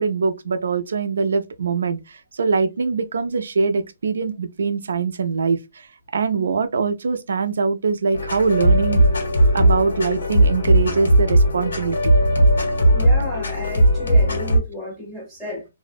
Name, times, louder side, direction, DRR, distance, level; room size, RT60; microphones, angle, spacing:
voice 1, 0.0-5.9 6.1-9.0 9.5-12.2, right 4 dB, 75° right, 0.4 m, -23 dB
sound 1, 8.1-14.6, right 1 dB, 85° left, 1.3 m, -17 dB
voice 2, 12.9-15.7, left 1 dB, 5° left, 0.7 m, -32 dB
2.5 x 2.0 x 2.4 m
hypercardioid pair, 165°, 0 cm